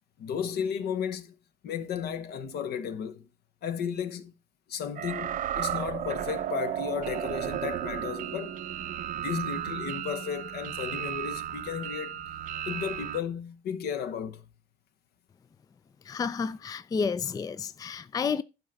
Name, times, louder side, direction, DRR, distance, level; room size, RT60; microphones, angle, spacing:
voice 1, 0.2-1.3 1.6-3.3 3.6-4.3 4.7-8.6 9.1-12.2 12.7-14.5, left 7 dB, 75° left, 1.3 m, -34 dB
sound 1, 5.0-13.2, right 11 dB, 55° right, 0.6 m, -34 dB
voice 2, 16.0-18.4, left 5 dB, 20° left, 0.4 m, -30 dB
11.5 x 4.7 x 5.2 m
cardioid pair, 110°, 17 cm